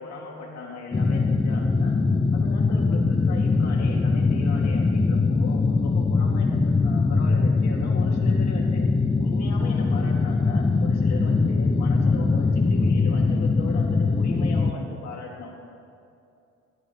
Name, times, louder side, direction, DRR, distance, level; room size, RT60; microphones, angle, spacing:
voice 1, 0.0-2.0 2.3-8.8 9.2-15.5, left 3 dB, 60° left, -1 dB, 2.5 m, -38 dB
sound 1, 0.9-14.7, left 4 dB, 15° left, 0.5 m, -22 dB
16.5 x 10.0 x 4.3 m, 2.5 s
supercardioid pair, 80°, 30 cm